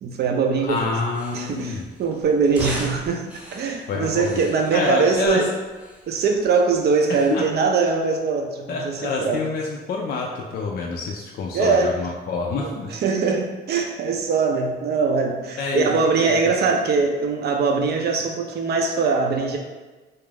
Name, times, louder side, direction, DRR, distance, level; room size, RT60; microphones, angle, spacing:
voice 1, 0.0-0.8 1.3-5.5 6.1-9.4 11.5-11.9 12.6-19.6, right 4 dB, 55° right, 2 dB, 0.4 m, -22 dB
voice 2, 0.6-1.9 3.9-4.4 4.7-5.4 7.1-7.4 8.7-12.9 15.6-16.4, left 4 dB, 55° left, -1 dB, 0.4 m, -27 dB
sound 1, 0.6-8.2, equal, 5° right, 0.6 m, -40 dB
2.4 x 2.1 x 3.2 m, 1.3 s
cardioid pair, 90°, 20 cm